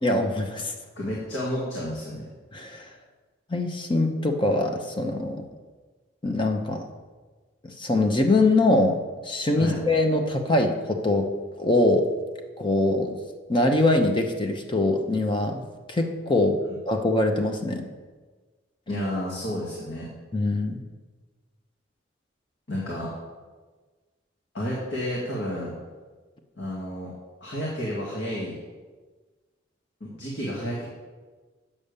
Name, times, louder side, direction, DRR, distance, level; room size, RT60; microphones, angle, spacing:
voice 1, 0.0-0.7 2.5-2.9 3.5-5.4 6.2-6.8 7.6-9.0 9.2-11.3 11.6-12.1 12.6-13.1 13.5-15.6 15.9-17.8 20.3-20.8, left 2 dB, 25° left, 4 dB, 0.9 m, -23 dB
voice 2, 1.0-2.2 9.6-9.8 18.9-20.1 22.7-23.1 24.5-25.7 26.6-27.1 27.4-28.6 30.0-30.8, equal, 75° left, -5 dB, 2.2 m, -31 dB
8.5 x 7.1 x 6.8 m, 1.4 s
head